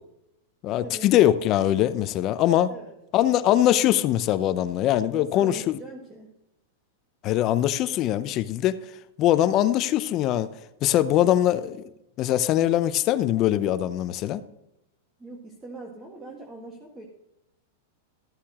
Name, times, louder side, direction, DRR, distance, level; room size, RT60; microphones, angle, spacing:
voice 1, 0.6-2.7 3.1-5.8 7.2-8.8 9.2-10.5 10.8-11.9 12.2-14.4, left 12 dB, 40° left, 13 dB, 0.7 m, -22 dB
voice 2, 5.1-6.4 15.2-17.1, right 2 dB, 15° right, -1 dB, 1.8 m, -41 dB
14.0 x 8.4 x 3.0 m, 0.87 s
hypercardioid pair, 135°, 0 cm